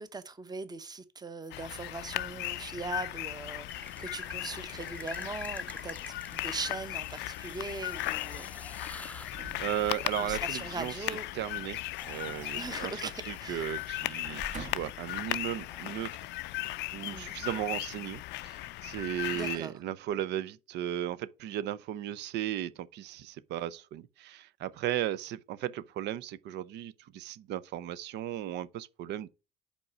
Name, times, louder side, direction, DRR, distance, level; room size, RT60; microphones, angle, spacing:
voice 1, 0.0-6.0 6.3-8.8 10.2-11.3 12.6-13.7 17.0-17.3 19.3-19.8, right 4 dB, 20° right, 0.9 m, -40 dB
sound 1, 1.4-2.4 3.7-14.3 15.7-17.5, left 3 dB, 5° left, 0.5 m, -49 dB
sound 2, 1.5-19.6, left 18 dB, 70° left, 0.4 m, -37 dB
sound 3, 9.2-10.4 12.0-13.1 13.4-13.6 14.2-15.1 15.8-15.9, right 4 dB, 40° right, 1.4 m, -47 dB
voice 2, 9.6-10.9 11.3-11.8 12.0-16.1 16.9-29.3, right 11 dB, 65° right, 0.6 m, -36 dB
5.4 x 4.4 x 6.0 m
supercardioid pair, 80°, 19 cm